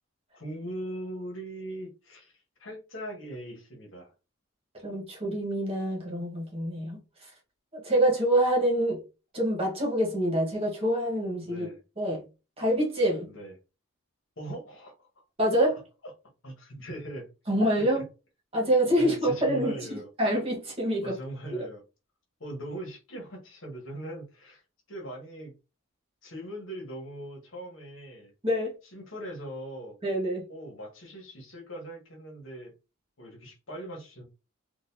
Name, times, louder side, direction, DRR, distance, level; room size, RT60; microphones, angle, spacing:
voice 1, 0.3-2.3 2.6-4.1 11.4-11.8 13.3-13.5 14.4-15.1 16.4-17.3 17.8-17.9 19.0-20.1 21.0-21.8 22.4-24.6 24.9-25.5 26.2-28.3 28.9-30.0 30.5-32.7 33.2-34.2, right 1 dB, 65° left, 1.2 m, -40 dB
voice 2, 4.8-7.3 7.7-9.0 9.3-11.7 12.0-12.2 12.6-13.3 15.4-15.8 17.5-18.0 18.5-21.1 21.5-21.6 28.4-28.7 30.0-30.4, right 1 dB, 30° right, 1.4 m, -26 dB
3.9 x 2.5 x 2.7 m
head